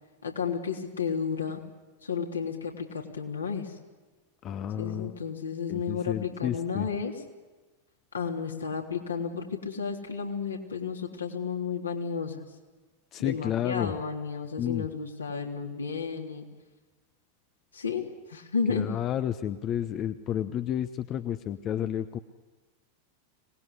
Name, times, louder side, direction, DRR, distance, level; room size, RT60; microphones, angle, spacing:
voice 1, 0.2-1.6 2.0-3.7 4.8-7.1 8.1-12.4 13.2-16.5 17.7-18.9, left 6 dB, 75° left, 1 dB, 3.4 m, -32 dB
voice 2, 4.4-5.2 5.7-6.9 13.1-13.9 14.6-14.9 18.7-22.2, left 10 dB, 30° left, 11 dB, 1.0 m, -31 dB
25.5 x 19.5 x 9.8 m, 1.3 s
figure-of-eight pair, 90°, 0 cm